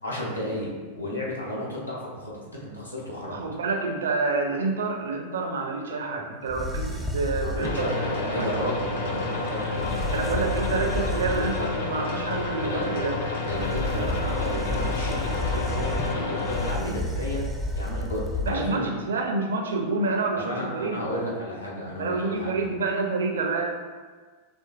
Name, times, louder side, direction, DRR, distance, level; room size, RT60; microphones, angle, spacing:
voice 1, 0.0-3.3 7.4-10.5 12.7-12.9 13.4-17.4 17.7-18.9 20.4-22.7, left 1 dB, 85° left, -5 dB, 0.8 m, -33 dB
voice 2, 3.3-8.5 10.1-13.2 13.6-13.7 18.4-21.2 22.0-23.7, right 3 dB, 65° right, 3 dB, 0.5 m, -28 dB
sound 1, 6.5-7.9 9.5-9.6 9.7-11.8 13.5-18.9, left 1 dB, ahead, 0.4 m, -31 dB
sound 2, 7.6-16.7, left 3 dB, 60° left, 0.5 m, -30 dB
4.3 x 3.1 x 2.2 m, 1.4 s
figure-of-eight pair, 90°, 0 cm